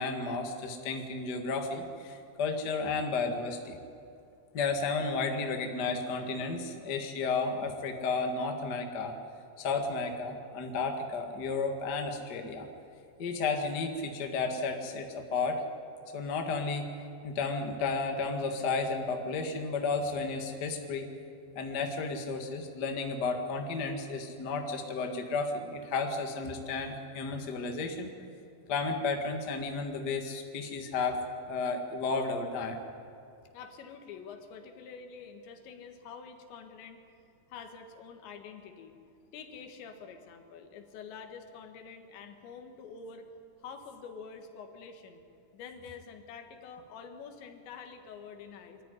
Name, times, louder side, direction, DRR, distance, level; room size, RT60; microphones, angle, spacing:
voice 1, 0.0-3.8 4.5-9.1 9.6-12.7 13.2-15.6 16.1-16.9 17.2-21.0 21.5-28.1 28.7-32.8, left 4 dB, 55° left, 3 dB, 1.1 m, -32 dB
voice 2, 33.5-37.0 37.5-39.0 39.3-43.3 43.6-45.2 45.5-48.8, left 6 dB, 90° left, 5 dB, 3.9 m, -47 dB
23.5 x 14.0 x 9.8 m, 2.6 s
omnidirectional pair, 5.0 m